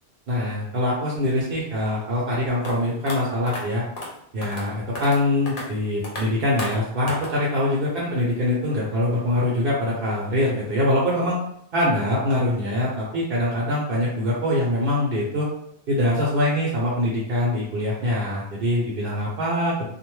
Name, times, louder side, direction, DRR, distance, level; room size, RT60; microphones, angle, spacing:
voice 1, 0.3-3.8 4.3-11.4 11.7-15.5 15.9-19.9, left 1 dB, 65° right, -5 dB, 0.8 m, -23 dB
sound 1, 2.6-2.7 3.1-3.2 3.5-3.6 4.0-4.1 4.4-4.7 5.0-5.2 5.5-5.6 6.0-6.2 6.6-6.8 7.1-7.3, left 2 dB, 60° left, 0.9 m, -32 dB
2.5 x 2.2 x 3.0 m, 0.72 s
omnidirectional pair, 1.1 m